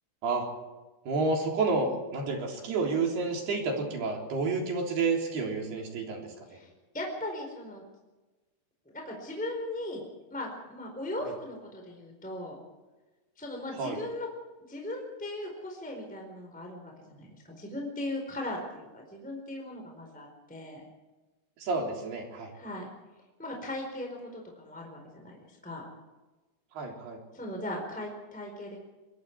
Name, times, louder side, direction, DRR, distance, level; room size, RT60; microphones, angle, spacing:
voice 1, 1.1-6.3 11.2-11.3 13.8-14.0 21.6-22.5 26.8-27.2, right 3 dB, 60° right, 1 dB, 5.5 m, -30 dB
voice 2, 6.5-7.8 8.9-10.0 10.3-12.6 13.4-14.3 14.7-20.8 22.5-22.9 23.4-25.9 27.3-28.8, left 1 dB, ahead, 1 dB, 3.9 m, -38 dB
25.0 x 22.5 x 4.8 m, 1.2 s
omnidirectional pair, 5.2 m